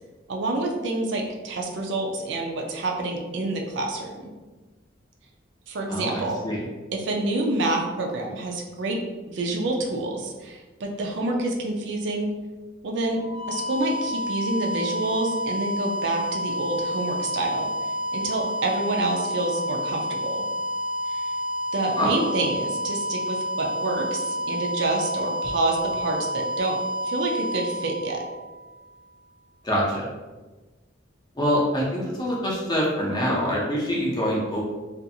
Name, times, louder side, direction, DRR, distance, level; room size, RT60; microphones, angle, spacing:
voice 1, 0.3-4.3 5.7-6.5 6.9-9.0 9.3-12.3 12.8-13.2 13.5-17.7 18.1-20.4 21.1-21.2 21.7-26.8 27.0-28.2, right 2 dB, 65° right, 0 dB, 0.4 m, -27 dB
voice 2, 5.9-6.7 22.0-22.1 29.6-30.0 31.4-34.6, equal, 20° left, -4 dB, 0.6 m, -25 dB
sound 1, 13.1-28.9, equal, 55° left, 0.7 m, -29 dB
2.5 x 2.4 x 2.7 m, 1.2 s
head